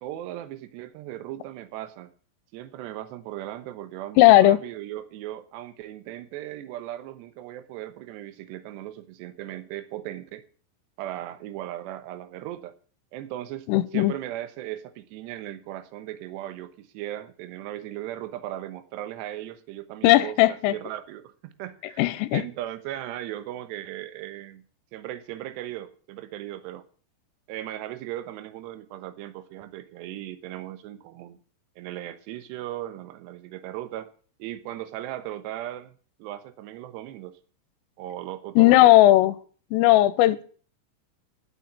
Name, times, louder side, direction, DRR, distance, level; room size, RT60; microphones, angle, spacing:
voice 1, 0.0-2.1 2.5-10.5 11.0-12.8 13.1-13.7 13.9-22.0 22.3-24.6 24.9-26.8 27.5-31.4 31.8-34.1 34.4-37.4 38.0-38.9, right 13 dB, 70° right, 2.8 m, -37 dB
voice 2, 4.2-4.6 13.7-14.1 20.0-20.7 22.0-22.4 38.6-39.4 39.7-40.4, left 16 dB, 85° left, 3.3 m, -17 dB
12.0 x 7.3 x 8.6 m
omnidirectional pair, 6.0 m